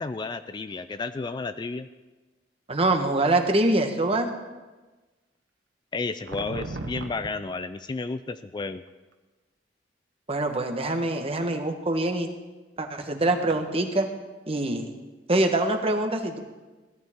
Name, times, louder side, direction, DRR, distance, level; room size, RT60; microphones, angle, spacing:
voice 1, 0.0-1.9 5.9-8.8, left 3 dB, 25° left, 11 dB, 0.3 m, -32 dB
voice 2, 2.7-4.3 10.3-12.3 12.8-14.1 14.5-14.9 15.3-16.4, right 2 dB, 35° right, 5 dB, 1.2 m, -24 dB
sound 1, 6.3-7.3 8.9-9.1 11.1-11.4 13.5-13.7, right 2 dB, 70° right, 0.9 m, -36 dB
16.5 x 11.5 x 3.6 m, 1.2 s
head